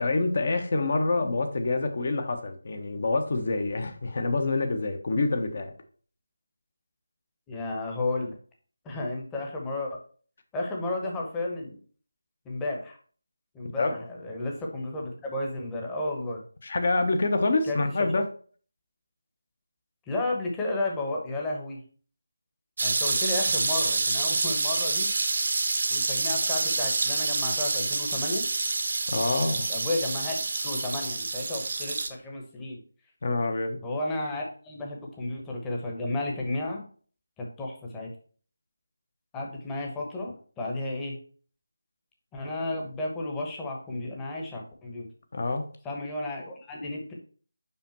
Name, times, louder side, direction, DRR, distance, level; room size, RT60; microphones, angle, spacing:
voice 1, 0.0-5.7 13.8-13.9 16.6-18.3 29.1-29.7 33.2-33.8 45.3-45.6, left 2 dB, 40° left, 6 dB, 1.0 m, -26 dB
voice 2, 7.5-8.3 8.8-10.0 10.5-11.8 12.4-13.0 13.5-16.4 17.7-18.1 20.1-21.8 22.8-25.1 25.9-28.4 29.7-32.8 33.8-36.8 37.4-38.1 39.3-41.2 42.3-45.1 45.8-47.1, left 2 dB, 10° left, -1 dB, 1.1 m, -33 dB
sound 1, 22.8-32.1, right 3 dB, 40° right, 1.0 m, -27 dB
5.6 x 5.1 x 4.4 m, 0.43 s
figure-of-eight pair, 160°, 0 cm